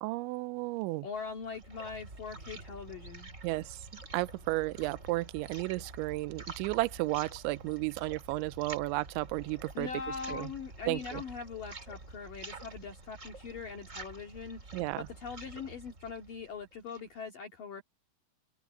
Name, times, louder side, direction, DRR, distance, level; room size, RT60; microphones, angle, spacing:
voice 1, 0.0-1.1 3.4-3.8 4.1-9.9 10.3-10.5 10.9-11.2 14.7-15.1, right 21 dB, 80° right, 2.8 m, -33 dB
voice 2, 1.0-3.3 9.7-14.6 15.0-17.8, left 5 dB, 50° left, 3.2 m, -41 dB
sound 1, 1.1-17.2, right 2 dB, 20° right, 2.6 m, -48 dB
omnidirectional pair, 5.9 m